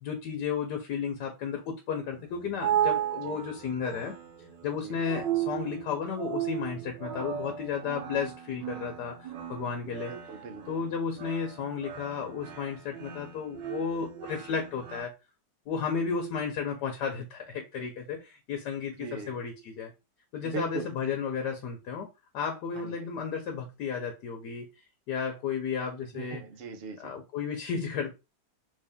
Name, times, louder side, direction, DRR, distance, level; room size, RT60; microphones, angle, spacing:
voice 1, 0.0-4.1 4.6-10.1 10.7-15.1 15.7-19.9 20.3-22.1 22.3-24.7 25.1-26.4 27.0-28.1, left 6 dB, 75° left, 1.3 m, -33 dB
sound 1, 2.1-15.0, right 10 dB, 85° right, 1.5 m, -35 dB
voice 2, 10.1-10.8 19.0-19.3 20.4-20.9 22.7-23.0 26.1-27.1, right 4 dB, 65° right, 0.6 m, -39 dB
3.4 x 2.7 x 3.5 m
omnidirectional pair, 1.9 m